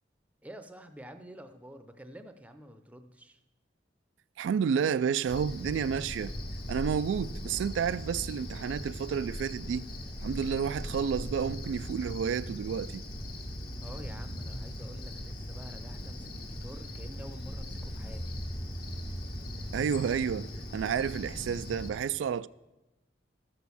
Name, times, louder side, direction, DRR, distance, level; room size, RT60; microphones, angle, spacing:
voice 1, 0.4-3.4 13.8-18.4, right 1 dB, 10° right, 0.6 m, -48 dB
voice 2, 4.4-6.3 6.7-9.9 10.2-13.0 19.7-20.5 20.7-22.5, right 7 dB, 90° right, 0.3 m, -30 dB
Cricket, 5.3-21.9, equal, 55° left, 1.4 m, -39 dB
13.5 x 6.3 x 7.0 m
head